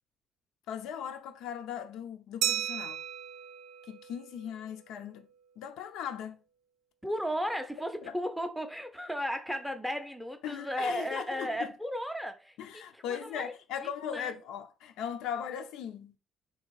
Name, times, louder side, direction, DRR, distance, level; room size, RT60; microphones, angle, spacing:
voice 1, 0.7-3.0 3.9-5.3 5.6-6.4 8.0-8.2 10.4-11.7 12.6-16.2, left 8 dB, 85° left, 0.6 m, -38 dB
Glass, 2.4-4.9, right 11 dB, 75° right, 0.5 m, -35 dB
voice 2, 7.0-13.5 13.8-14.3, equal, ahead, 0.5 m, -35 dB
3.3 x 2.8 x 4.6 m
cardioid pair, 170°, 0 cm